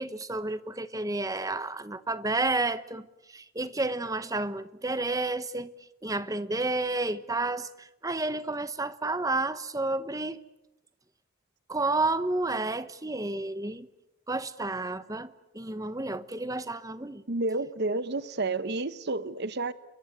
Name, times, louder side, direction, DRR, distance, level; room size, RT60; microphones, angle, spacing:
voice 1, 0.0-3.1 3.3-5.7 6.0-10.4 11.7-13.9 14.3-17.2, right 2 dB, 15° right, 1.0 m, -31 dB
voice 2, 17.3-19.7, right 2 dB, 50° right, 1.0 m, -30 dB
29.5 x 23.5 x 8.0 m
head